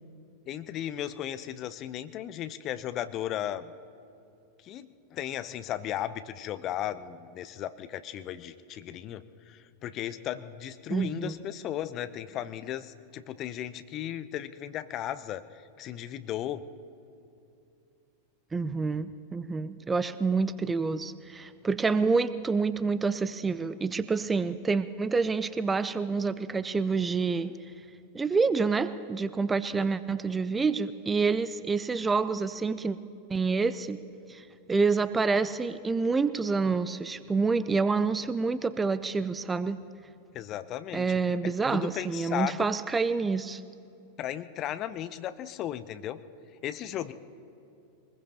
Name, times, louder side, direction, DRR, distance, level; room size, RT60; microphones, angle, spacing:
voice 1, 0.5-3.7 4.6-16.7 40.3-41.2 41.4-42.7 44.2-46.2 46.6-47.1, left 11 dB, 35° left, 12 dB, 0.7 m, -36 dB
voice 2, 10.9-11.3 18.5-27.5 28.1-33.0 33.3-34.0 34.3-39.8 40.9-43.6, right 4 dB, 15° right, 14 dB, 0.4 m, -28 dB
23.5 x 20.5 x 3.0 m, 2.7 s
figure-of-eight pair, 90°, 0 cm